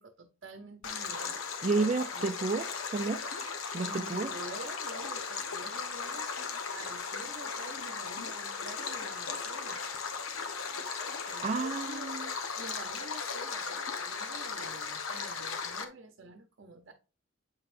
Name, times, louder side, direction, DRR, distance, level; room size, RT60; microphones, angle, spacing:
voice 1, 0.0-2.4 3.8-6.3 6.7-9.8 11.3-12.3 12.6-16.9, right 2 dB, 60° right, 0.8 m, -48 dB
Stream, 0.8-15.8, left 5 dB, 90° left, 1.2 m, -37 dB
voice 2, 1.6-2.7 2.9-3.2 3.7-4.3 11.4-12.3, right 3 dB, 35° right, 0.4 m, -30 dB
7.9 x 5.4 x 2.6 m
head